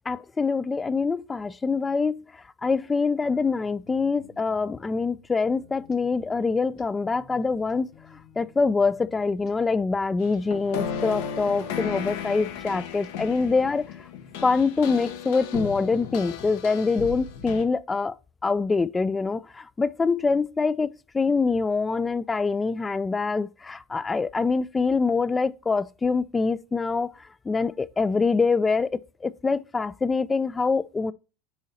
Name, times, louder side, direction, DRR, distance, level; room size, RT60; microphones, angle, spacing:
voice 1, 0.1-2.3 2.6-7.9 8.4-13.9 14.4-18.2 18.4-27.1 27.5-31.1, left 4 dB, 15° left, 0.4 m, -25 dB
sound 1, 3.2-14.3, left 3 dB, 45° left, 1.4 m, -54 dB
sound 2, 10.2-17.6, left 8 dB, 70° left, 1.1 m, -35 dB
9.6 x 3.9 x 4.3 m
supercardioid pair, 105°, 0 cm